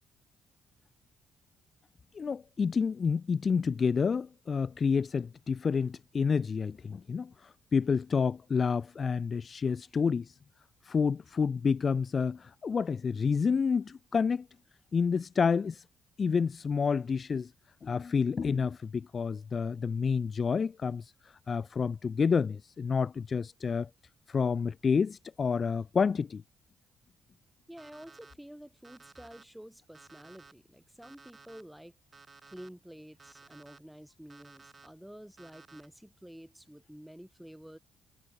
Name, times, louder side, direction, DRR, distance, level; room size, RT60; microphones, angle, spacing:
voice 1, 2.1-10.3 10.8-14.5 14.9-15.8 16.2-17.5 17.8-21.1 21.5-23.9 24.3-26.4, left 5 dB, 40° left, 0.9 m, -29 dB
voice 2, 27.7-31.9 32.5-37.8, equal, 5° right, 4.0 m, -50 dB
Alarm, 27.8-28.3 28.8-29.4 29.9-30.5 31.0-31.6 32.1-32.7 33.2-33.8 34.3-34.9 35.4-35.9, right 4 dB, 30° right, 7.0 m, -55 dB
cardioid pair, 90°, 0 cm